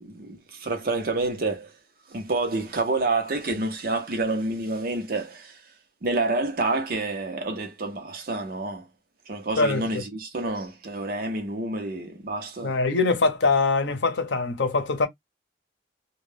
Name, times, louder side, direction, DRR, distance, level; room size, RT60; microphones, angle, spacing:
voice 1, 0.0-1.7 2.1-5.6 6.0-8.9 9.3-12.8, right 2 dB, 50° right, 0.6 m, -28 dB
voice 2, 9.6-10.0 12.6-15.1, left 3 dB, 80° left, 0.7 m, -23 dB
2.2 x 2.1 x 3.2 m
head